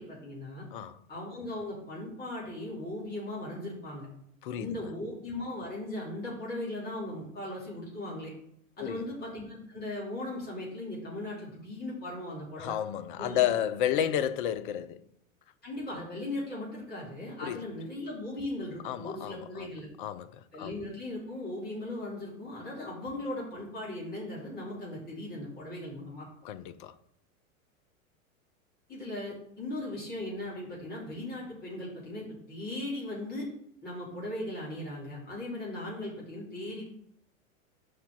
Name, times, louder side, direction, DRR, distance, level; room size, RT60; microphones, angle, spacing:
voice 1, 0.0-0.7 1.1-4.1 4.6-8.3 8.8-12.7 13.2-13.5 13.9-14.1 15.6-19.9 20.5-26.3 28.9-33.5 33.8-36.8, left 1 dB, 25° left, 2.9 m, -38 dB
voice 2, 4.4-4.9 8.8-9.1 12.6-15.1 17.4-17.6 18.8-19.7 20.0-20.8 26.4-27.0, left 10 dB, 40° left, 0.5 m, -32 dB
5.7 x 4.6 x 5.9 m
figure-of-eight pair, 90°, 42 cm